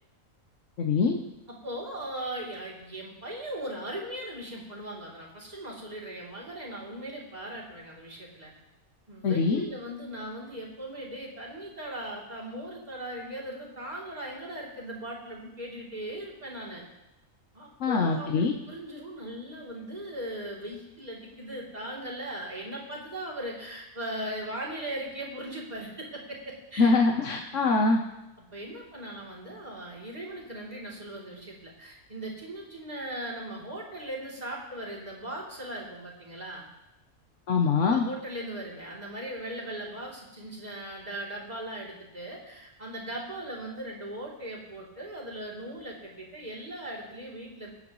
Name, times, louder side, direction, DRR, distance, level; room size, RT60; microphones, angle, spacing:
voice 1, 0.8-1.2 9.2-9.7 17.8-18.5 26.8-28.0 37.5-38.1, left 4 dB, 65° left, 2 dB, 1.2 m, -23 dB
voice 2, 1.6-8.5 9.1-16.8 17.5-26.9 28.5-36.7 37.9-47.7, right 1 dB, 30° right, -3 dB, 3.3 m, -39 dB
25.0 x 9.2 x 3.1 m, 0.95 s
omnidirectional pair, 1.4 m